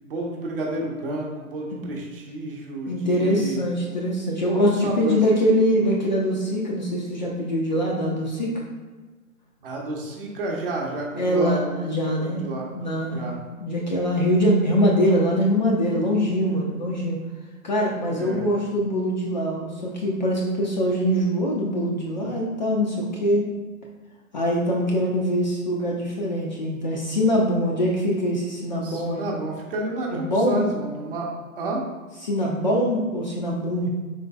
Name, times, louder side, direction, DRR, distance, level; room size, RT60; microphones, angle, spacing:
voice 1, 0.0-3.6 4.4-5.2 9.6-11.8 12.1-12.7 13.1-13.4 18.1-18.5 28.8-31.8 33.8-33.9, right 2 dB, 40° right, -1 dB, 0.8 m, -31 dB
voice 2, 2.9-8.6 11.2-12.4 12.7-13.3 13.6-17.2 17.6-23.5 24.3-29.3 30.1-30.6 32.2-33.9, equal, 30° left, -3 dB, 0.4 m, -23 dB
4.4 x 3.9 x 2.3 m, 1.3 s
figure-of-eight pair, 125°, 44 cm